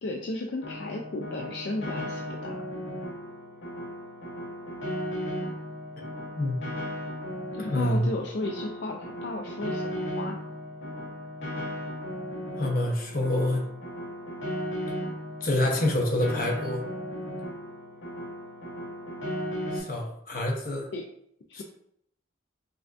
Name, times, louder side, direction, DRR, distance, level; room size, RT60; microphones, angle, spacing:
voice 1, 0.0-2.6 7.6-10.4 20.9-21.0 21.5-21.6, left 2 dB, 65° left, 1 dB, 0.4 m, -34 dB
Piano, 0.6-19.8, equal, 85° left, 0.9 m, -36 dB
voice 2, 7.6-8.1 12.6-13.7 15.4-16.8 19.7-20.9 21.5-21.6, left 1 dB, 50° left, 0 dB, 0.9 m, -27 dB
5.5 x 2.6 x 2.4 m, 0.71 s
head